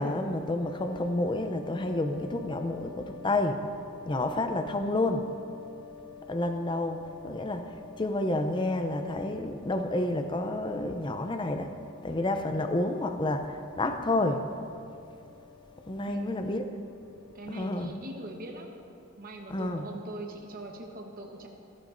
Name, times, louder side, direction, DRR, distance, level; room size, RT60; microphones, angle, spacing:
voice 1, 0.0-3.6 4.0-5.2 6.3-11.7 12.0-14.4 15.9-16.6 17.5-17.9 19.5-19.9, left 2 dB, 20° left, 7 dB, 0.5 m, -30 dB
sound 1, 0.6-17.9, left 6 dB, 65° left, 2.8 m, -49 dB
voice 2, 16.1-16.4 17.3-18.8 19.2-21.5, right 1 dB, 40° right, 1 dB, 1.1 m, -41 dB
15.0 x 14.5 x 2.6 m, 2.5 s
head